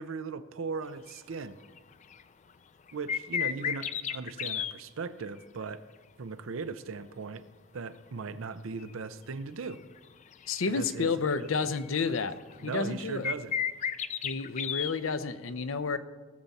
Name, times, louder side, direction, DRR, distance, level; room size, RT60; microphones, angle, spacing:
voice 1, 0.0-1.6 2.9-5.8 6.2-7.4 7.7-9.8 10.7-11.1 11.4-11.7 12.1-12.2 12.6-13.5, right 4 dB, 85° right, 13 dB, 0.6 m, -38 dB
sound 1, 1.1-1.2 1.6-1.8 2.1-2.2 2.9-4.7 8.8-8.9 9.6-10.6 10.9-11.0 11.4-11.5 11.8-12.8 13.2-14.9, left 8 dB, 35° left, 0.4 m, -33 dB
voice 2, 10.5-12.3 12.6-13.3 14.2-16.0, left 4 dB, 80° left, 12 dB, 0.6 m, -30 dB
17.5 x 7.1 x 4.2 m, 1.4 s
head